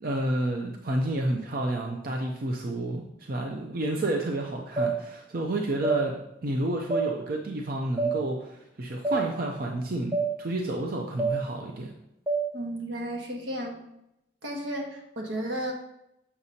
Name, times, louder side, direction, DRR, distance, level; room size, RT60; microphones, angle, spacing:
voice 1, 0.0-11.9, right 1 dB, 45° right, 1 dB, 0.5 m, -30 dB
sound 1, 4.8-4.9 5.8-6.0 6.9-7.1 8.0-8.1 9.0-9.2 10.1-10.3 11.2-11.3 12.3-12.4, right 3 dB, 5° right, 0.8 m, -25 dB
voice 2, 12.5-13.8 14.4-15.7, right 1 dB, 80° right, 1 dB, 1.4 m, -33 dB
7.0 x 6.6 x 2.8 m, 0.83 s
head